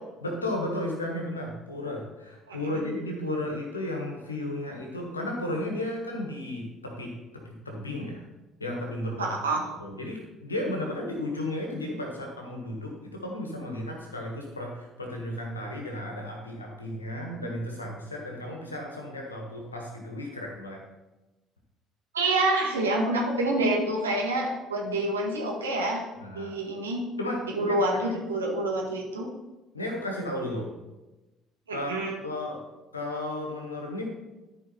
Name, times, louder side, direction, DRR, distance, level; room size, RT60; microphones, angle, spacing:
voice 1, 0.2-8.2 8.6-9.3 9.8-20.8 26.2-26.5 27.2-28.0 29.7-30.7 31.7-32.6 32.9-34.1, left 1 dB, 85° left, 1 dB, 1.6 m, -34 dB
voice 2, 9.2-9.7 22.1-26.0 26.3-27.0 27.5-29.3 31.7-32.2, right 2 dB, 80° right, -2 dB, 1.7 m, -27 dB
13.0 x 4.9 x 4.4 m, 1.1 s
figure-of-eight pair, 55°, 0 cm